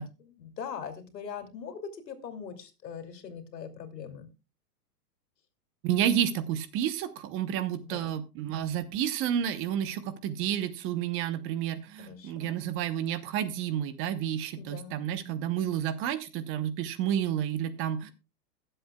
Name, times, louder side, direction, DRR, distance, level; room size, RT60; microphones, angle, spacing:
voice 1, 0.0-4.3 7.8-8.2 12.0-12.6 14.6-15.0, left 7 dB, 85° left, 7 dB, 2.8 m, -41 dB
voice 2, 5.8-18.1, right 10 dB, 25° right, 12 dB, 0.8 m, -30 dB
21.5 x 7.8 x 2.2 m, 0.28 s
hypercardioid pair, 135°, 48 cm